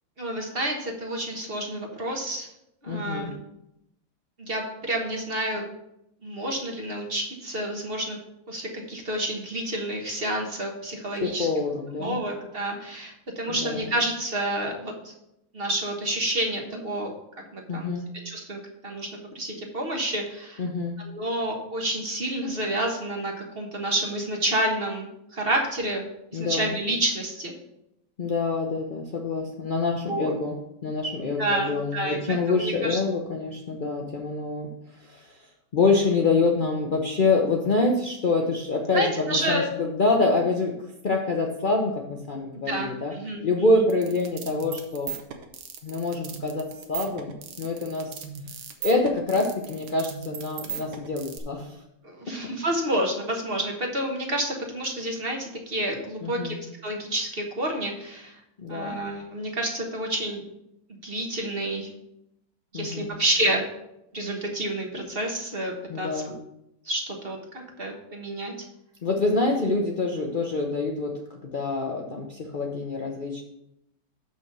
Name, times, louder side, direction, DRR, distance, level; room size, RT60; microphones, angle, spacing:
voice 1, 0.2-2.5 2.8-3.4 4.4-5.6 6.2-8.2 8.5-11.5 12.0-15.1 15.5-17.1 17.5-17.9 18.2-19.1 19.3-20.6 21.0-26.0 26.3-27.5 30.1-30.3 31.4-33.0 38.9-39.7 40.2-40.3 42.7-43.5 52.0-56.6 56.8-58.4 58.7-60.4 61.0-61.9 62.7-63.7 64.1-66.4 66.8-67.4 67.8-68.5, right 1 dB, 35° right, 1 dB, 1.2 m, -29 dB
voice 2, 2.9-3.3 11.2-12.2 13.5-13.9 17.7-18.1 20.6-21.0 26.3-26.8 28.2-30.6 30.8-34.7 35.0-35.4 35.7-40.8 41.0-43.1 43.4-45.2 45.8-48.2 48.8-51.8 52.3-52.4 56.2-56.6 58.6-59.0 62.7-63.2 65.9-66.4 69.0-71.2 71.5-73.4, left 3 dB, 80° left, 0 dB, 0.4 m, -26 dB
sound 1, 43.9-51.4, right 8 dB, 65° right, 1.4 m, -37 dB
6.9 x 5.6 x 6.0 m, 0.82 s
omnidirectional pair, 2.1 m